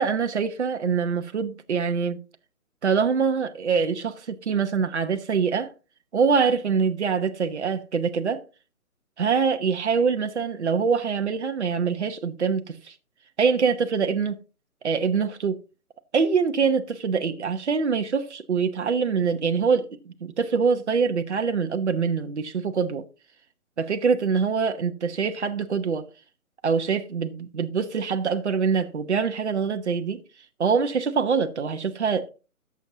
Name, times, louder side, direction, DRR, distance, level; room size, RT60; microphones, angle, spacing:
voice 1, 0.0-2.2 2.8-5.7 6.1-8.4 9.2-12.9 13.4-14.4 14.8-15.6 16.1-23.1 23.8-26.1 26.6-30.2 30.6-32.3, right 5 dB, 50° right, 1.0 m, -24 dB
17.5 x 7.3 x 2.8 m
figure-of-eight pair, 140°, 43 cm